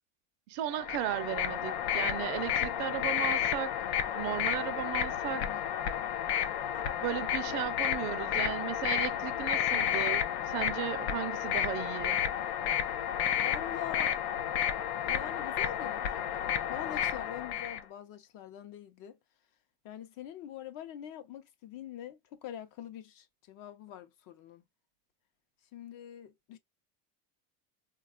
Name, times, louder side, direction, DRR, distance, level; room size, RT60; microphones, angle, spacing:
voice 1, 0.5-3.7 4.1-5.4 7.0-12.2, right 13 dB, 60° right, 0.5 m, -35 dB
sound 1, 0.7-17.8, left 10 dB, 85° left, 0.7 m, -31 dB
voice 2, 5.3-6.1 6.4-6.6 13.4-14.1 15.0-19.2 19.8-24.6 25.7-26.6, left 10 dB, 50° left, 0.6 m, -44 dB
3.5 x 2.3 x 2.3 m
cardioid pair, 140°, 44 cm